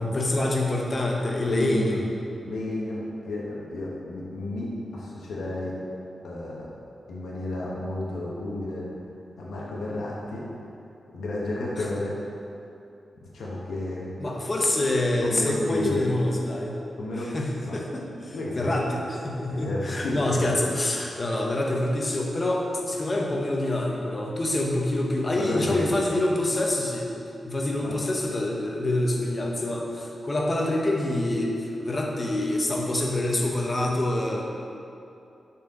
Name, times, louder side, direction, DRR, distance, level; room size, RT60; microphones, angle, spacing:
voice 1, 0.0-2.0 11.8-11.9 14.2-16.8 17.2-27.1 27.4-34.4, left 1 dB, 25° left, -1 dB, 0.8 m, -26 dB
voice 2, 1.4-2.0 2.4-3.0 3.2-4.7 4.9-5.7 6.2-6.7 7.1-8.8 9.4-10.4 11.1-12.2 13.3-14.1 15.2-16.0 17.0-17.3 17.6-17.8 18.3-18.7 19.5-20.5 25.4-25.9 27.8-27.9, left 2 dB, 90° left, -5 dB, 1.2 m, -31 dB
10.5 x 4.3 x 3.8 m, 2.7 s
wide cardioid pair, 160°, 0 cm